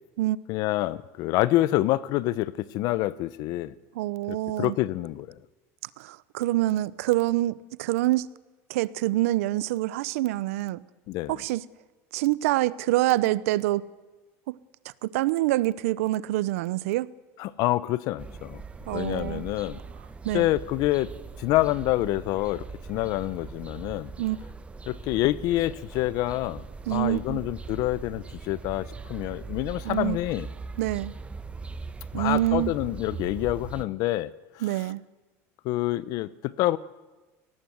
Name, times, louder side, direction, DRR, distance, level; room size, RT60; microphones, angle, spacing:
voice 1, 0.5-3.7 4.3-5.4 11.1-11.4 17.4-18.6 18.9-19.8 20.3-21.1 21.4-24.1 24.9-26.6 26.9-30.5 32.1-34.3 35.6-36.8, left 16 dB, 60° left, 18 dB, 0.9 m, -27 dB
voice 2, 3.9-4.8 6.0-8.3 8.7-10.8 11.3-11.6 12.1-13.8 14.5-14.6 15.0-17.1 18.9-19.5 20.2-20.5 24.2-24.4 26.9-27.4 29.8-30.2 30.8-31.1 32.1-32.7 34.6-35.0, right 16 dB, 85° right, 19 dB, 0.8 m, -26 dB
sound 1, 18.2-33.8, right 4 dB, 15° right, 1.2 m, -40 dB
25.0 x 19.0 x 8.0 m, 1.2 s
supercardioid pair, 125°, 7 cm